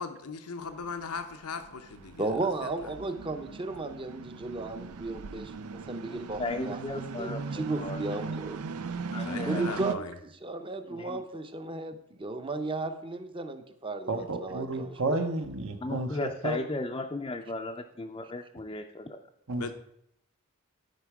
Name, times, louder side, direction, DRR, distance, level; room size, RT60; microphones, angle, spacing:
voice 1, 0.0-2.3 2.6-2.7 9.2-10.1 19.6-19.7, left 5 dB, 90° left, 8 dB, 0.8 m, -38 dB
sound 1, 0.6-9.9, right 4 dB, 85° right, 0.5 m, -38 dB
voice 2, 2.2-6.8 7.2-8.6 9.5-10.0 10.4-14.9, right 3 dB, 25° right, 8 dB, 0.7 m, -34 dB
voice 3, 6.0-8.0 9.1-9.8 10.9-11.2 15.8-19.2, left 2 dB, 20° left, 3 dB, 0.5 m, -36 dB
voice 4, 14.1-16.6 19.5-19.7, right 2 dB, 60° right, 7 dB, 1.0 m, -32 dB
12.0 x 5.0 x 4.7 m, 0.76 s
head